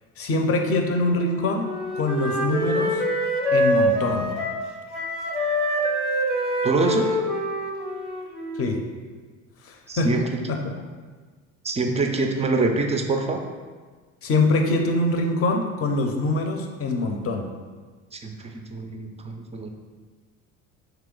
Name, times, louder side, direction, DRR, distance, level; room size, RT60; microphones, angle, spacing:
voice 1, 0.2-3.0 3.5-4.3 8.6-8.8 9.6-10.2 10.5-10.6 14.2-17.5, left 2 dB, 35° left, 4 dB, 0.6 m, -24 dB
Wind instrument woodwind instrument, 1.1-4.7 4.9-8.8, equal, ahead, 0.8 m, -25 dB
voice 2, 6.6-7.2 9.9-10.5 11.6-13.4 18.1-19.7, right 3 dB, 20° right, 3 dB, 0.4 m, -25 dB
3.2 x 2.9 x 3.7 m, 1.4 s
hypercardioid pair, 65°, 39 cm